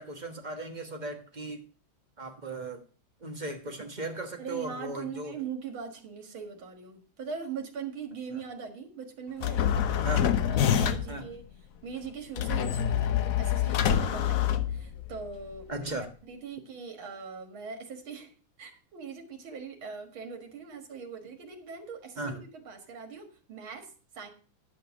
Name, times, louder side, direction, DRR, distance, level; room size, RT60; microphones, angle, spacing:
voice 1, 0.0-1.6 2.2-2.8 3.2-5.3 10.0-10.3 11.1-11.3 15.7-16.1 22.2-22.4, right 2 dB, 25° right, 4 dB, 1.1 m, -37 dB
voice 2, 4.4-10.1 10.5-11.4 11.8-15.9 16.3-24.3, right 6 dB, 85° right, 5 dB, 2.5 m, -41 dB
sound 1, 9.4-11.2 12.4-15.2, left 9 dB, 65° left, 0.8 m, -26 dB
10.0 x 6.2 x 5.9 m, 0.37 s
omnidirectional pair, 2.2 m